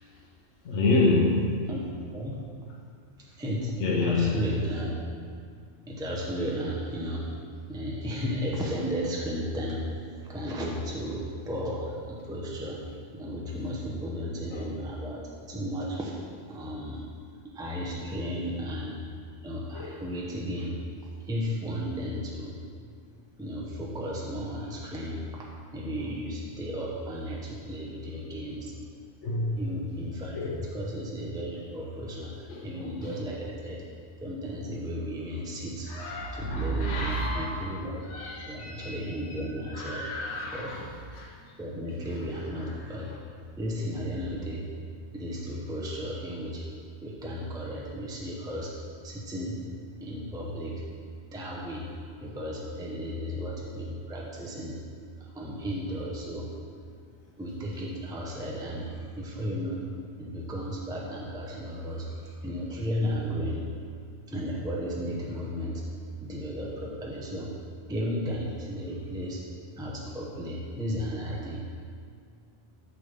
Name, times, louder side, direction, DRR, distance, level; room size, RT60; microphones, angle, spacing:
voice 1, 0.6-1.6 3.8-4.6 14.5-14.6 19.7-19.9 29.2-29.6 30.3-30.6 32.5-32.6 33.0-33.1 35.9-37.7 38.1-39.0 39.7-40.8 41.1-41.3, left 2 dB, 70° left, -4 dB, 1.1 m, -28 dB
voice 2, 3.2-3.7 4.0-5.0 5.9-7.3 7.7-12.8 13.1-16.1 16.5-17.0 17.5-19.0 19.4-20.8 21.2-22.6 23.4-25.3 25.7-28.7 29.6-33.8 34.2-35.9 36.3-38.0 38.5-40.1 40.5-40.8 41.6-43.1 43.6-44.7 45.1-46.6 47.0-48.8 49.0-49.7 50.0-50.9 51.3-51.9 52.2-54.8 55.2-56.5 57.4-59.9 60.2-63.7 64.3-65.8 66.2-67.5 67.9-69.4 69.8-71.6, equal, 5° right, -4 dB, 0.8 m, -34 dB
8.2 x 3.5 x 6.6 m, 2.2 s
omnidirectional pair, 1.3 m